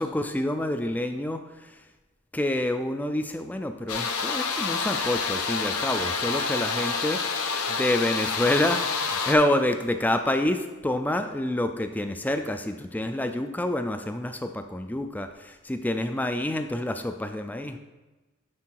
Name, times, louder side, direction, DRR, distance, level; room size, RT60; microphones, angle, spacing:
voice 1, 0.0-1.8 2.3-7.2 7.7-17.8, left 1 dB, 5° left, 7 dB, 0.3 m, -27 dB
sound 1, 3.9-9.3, left 5 dB, 80° left, 0.8 m, -28 dB
9.6 x 3.9 x 4.6 m, 1.2 s
head